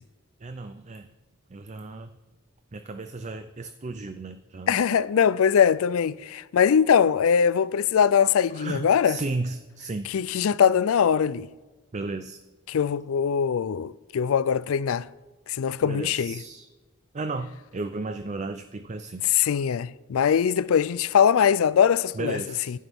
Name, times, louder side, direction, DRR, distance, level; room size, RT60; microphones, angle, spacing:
voice 1, 0.4-1.1 1.5-2.1 2.7-4.8 8.5-10.1 11.9-12.4 15.8-16.7 17.1-19.2 22.1-22.7, right 3 dB, 35° right, 0.5 m, -34 dB
voice 2, 4.7-9.2 10.1-11.5 12.7-15.1 15.5-16.4 19.3-22.4, left 7 dB, 70° left, 0.4 m, -22 dB
15.0 x 11.0 x 3.6 m
head